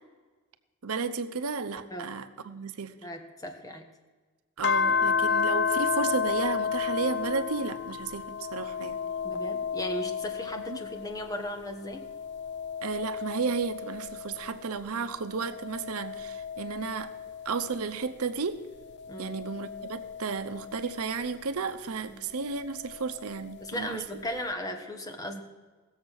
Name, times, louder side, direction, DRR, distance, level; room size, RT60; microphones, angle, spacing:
voice 1, 0.8-2.9 4.6-9.0 10.7-10.8 12.8-17.1 17.4-18.6 19.2-24.0, right 5 dB, 80° right, 10 dB, 0.8 m, -33 dB
voice 2, 3.0-3.9 9.2-12.1 19.1-19.3 22.1-22.2 23.6-25.4, equal, 15° left, 4 dB, 1.3 m, -36 dB
sound 1, 4.6-11.4 11.8-14.7 15.3-18.1 18.8-21.3 22.6-23.7, left 6 dB, 55° left, 0.5 m, -32 dB
17.0 x 7.3 x 6.4 m, 1.3 s
head